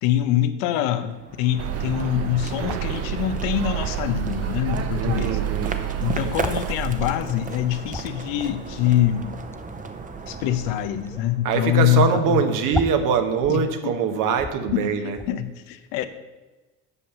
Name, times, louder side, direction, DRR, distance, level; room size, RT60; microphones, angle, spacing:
voice 1, 0.0-5.4 6.0-9.4 10.3-12.4 13.5-13.9 14.7-16.1, left 12 dB, 80° left, 10 dB, 0.8 m, -24 dB
sound 1, 1.0-11.7, right 4 dB, 25° right, 0.9 m, -35 dB
sound 2, 1.6-6.7, right 11 dB, 45° right, 0.7 m, -29 dB
sound 3, 2.6-3.0 4.2-4.3 4.5-4.6 4.8-5.2 6.3-6.7 7.2-7.3 7.6-8.3 9.5-9.7 10.4-10.7 11.1-11.3 11.7-11.8 12.0-12.1 12.7-13.7 14.0-14.1 14.3-14.8 15.1-15.3, left 2 dB, 10° left, 0.3 m, -33 dB
voice 2, 5.0-5.8 11.4-15.2, right 6 dB, 65° right, 7 dB, 1.2 m, -23 dB
8.3 x 5.5 x 6.9 m, 1.2 s
supercardioid pair, 90°, 34 cm